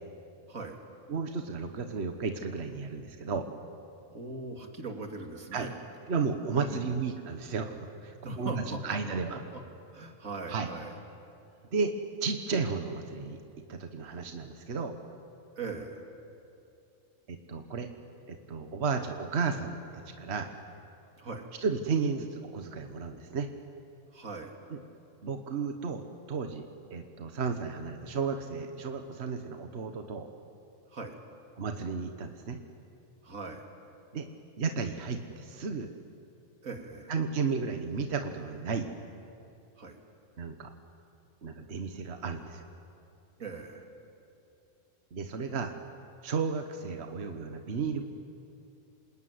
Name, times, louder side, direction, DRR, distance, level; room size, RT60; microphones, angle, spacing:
voice 1, 1.1-3.5 5.5-5.7 6.1-7.7 8.0-9.4 10.5-10.7 11.7-11.9 12.2-13.4 13.7-14.9 17.3-17.9 18.3-19.8 20.2-20.5 21.6-23.5 24.7-24.8 25.2-30.3 31.6-32.6 34.1-34.3 34.6-35.9 37.1-38.9 40.4-40.7 41.4-42.6 45.1-45.7 46.2-48.0, right 5 dB, 55° right, 6 dB, 1.5 m, -33 dB
voice 2, 4.1-5.8 6.6-7.0 8.2-9.6 9.9-11.0 15.6-16.1 21.2-21.5 24.1-24.6 30.9-31.1 33.2-33.6 36.6-37.1 39.8-40.0 43.4-43.9, right 3 dB, 85° right, 3 dB, 2.9 m, -40 dB
27.0 x 20.0 x 9.6 m, 2.6 s
omnidirectional pair, 1.4 m